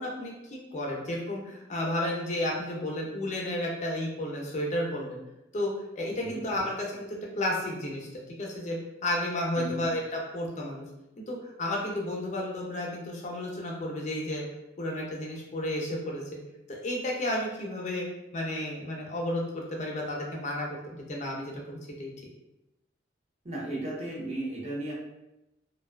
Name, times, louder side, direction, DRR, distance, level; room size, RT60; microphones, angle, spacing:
voice 1, 0.0-5.2 5.5-7.1 7.4-10.9 11.3-14.4 14.8-16.4 16.7-18.1 18.3-22.1, left 1 dB, 40° left, -1 dB, 0.5 m, -32 dB
voice 2, 23.4-24.9, right 1 dB, 35° right, -5 dB, 0.7 m, -35 dB
2.5 x 2.2 x 2.3 m, 0.92 s
head